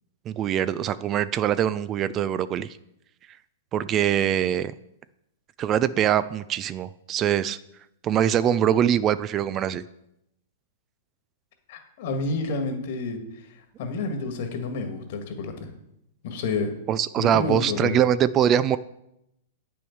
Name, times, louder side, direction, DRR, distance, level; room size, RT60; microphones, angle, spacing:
voice 1, 0.3-2.7 3.7-4.7 5.6-7.6 8.0-9.8 16.9-18.8, right 10 dB, 30° right, 16 dB, 0.3 m, -23 dB
voice 2, 11.7-13.2 13.8-15.7 16.2-16.7 17.2-18.0, left 3 dB, 60° left, 5 dB, 1.7 m, -29 dB
8.6 x 6.1 x 4.6 m, 0.82 s
hypercardioid pair, 120°, 0 cm